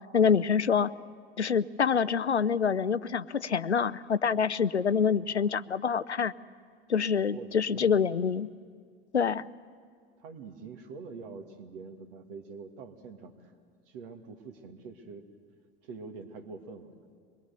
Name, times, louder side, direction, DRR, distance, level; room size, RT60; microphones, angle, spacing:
voice 1, 0.1-0.9 1.4-6.3 6.9-8.5 9.1-9.4, left 6 dB, 90° left, 16 dB, 0.5 m, -26 dB
voice 2, 7.3-8.0 10.2-13.5 13.9-15.2 15.8-16.9, right 4 dB, 55° right, 8 dB, 2.0 m, -45 dB
24.0 x 21.5 x 6.8 m, 2.1 s
figure-of-eight pair, 80°, 33 cm